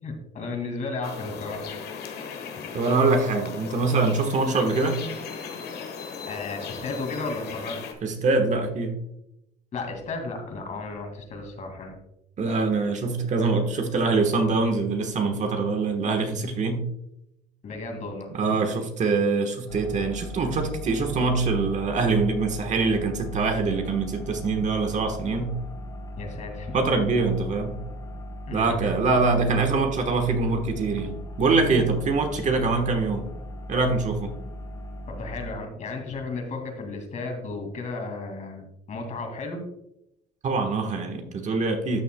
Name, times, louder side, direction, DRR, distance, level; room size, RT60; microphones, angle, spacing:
voice 1, 0.0-1.6 6.3-7.8 9.7-12.0 17.6-18.3 26.2-26.8 28.5-28.8 35.1-39.6, left 3 dB, 45° left, 4 dB, 2.2 m, -34 dB
sound 1, 1.0-7.9, left 6 dB, 75° left, 1.4 m, -37 dB
voice 2, 2.7-5.0 8.0-9.0 12.4-16.8 18.3-25.5 26.7-27.8 28.5-33.3 33.7-34.3 40.4-42.0, right 3 dB, 45° right, 5 dB, 1.3 m, -24 dB
sound 2, 19.7-35.6, equal, 25° left, 2.5 m, -38 dB
12.5 x 6.8 x 2.2 m, 0.81 s
cardioid pair, 110°, 17 cm